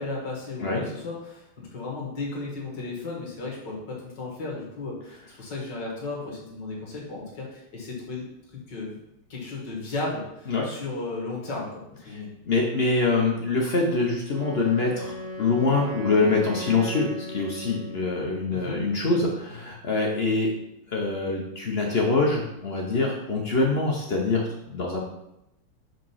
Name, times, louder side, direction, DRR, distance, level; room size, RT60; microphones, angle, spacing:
voice 1, 0.0-8.3 8.5-9.0 9.3-12.3 18.5-18.8, left 3 dB, 55° left, -2 dB, 2.2 m, -35 dB
voice 2, 12.5-20.5 20.9-25.0, left 3 dB, 85° left, -1 dB, 0.5 m, -24 dB
Wind instrument woodwind instrument, 14.3-18.3, right 1 dB, 60° right, 1.8 m, -37 dB
5.2 x 4.4 x 5.6 m, 0.84 s
omnidirectional pair, 2.4 m